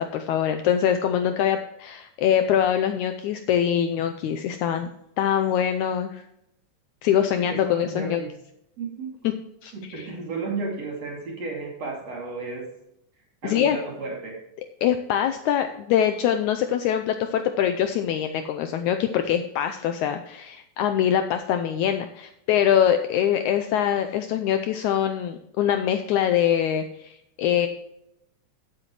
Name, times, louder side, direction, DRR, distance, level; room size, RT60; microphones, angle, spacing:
voice 1, 0.0-4.9 5.2-6.2 7.0-8.2 9.6-10.0 13.4-13.8 14.8-27.7, left 9 dB, 85° left, 7 dB, 1.7 m, -23 dB
voice 2, 7.4-8.3 8.8-9.2 9.7-12.7 13.4-14.4, right 4 dB, 50° right, -1 dB, 3.5 m, -33 dB
15.5 x 8.0 x 3.0 m, 0.80 s
omnidirectional pair, 3.9 m